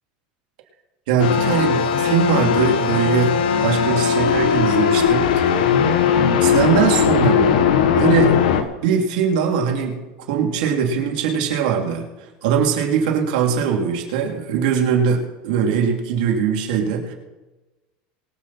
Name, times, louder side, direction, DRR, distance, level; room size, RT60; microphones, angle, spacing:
voice 1, 1.1-5.6 6.4-7.6 7.9-8.3 8.8-10.0 10.3-12.1 12.4-17.1, right 7 dB, 80° right, 1 dB, 3.2 m, -21 dB
sound 1, 1.2-8.6, left 7 dB, 85° left, 1.3 m, -18 dB
23.5 x 8.2 x 4.4 m, 1.1 s
supercardioid pair, 130°, 5 cm